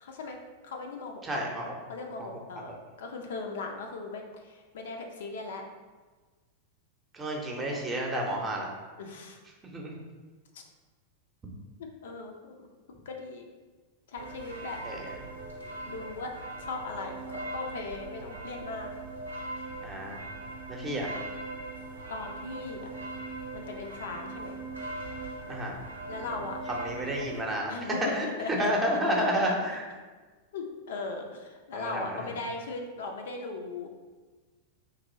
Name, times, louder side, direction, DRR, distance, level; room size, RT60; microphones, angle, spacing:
voice 1, 0.0-1.4 1.9-5.6 9.0-9.4 10.5-10.6 11.8-12.7 13.1-13.5 14.1-14.8 15.9-18.9 22.1-22.9 23.5-24.6 26.1-26.6 27.7-28.8 29.4-29.8 30.5-33.9, left 3 dB, 60° left, 2 dB, 0.4 m, -38 dB
voice 2, 1.2-1.7 7.1-8.7 9.7-10.0 14.8-15.0 19.8-20.2 20.7-21.1 25.5-25.7 26.7-27.7 28.1-28.3 28.6-29.8 31.7-32.2, equal, 20° right, 0 dB, 0.7 m, -30 dB
sound 1, 14.1-27.4, right 2 dB, 75° right, 0.6 m, -40 dB
2.9 x 2.6 x 3.9 m, 1.4 s
figure-of-eight pair, 90°, 0 cm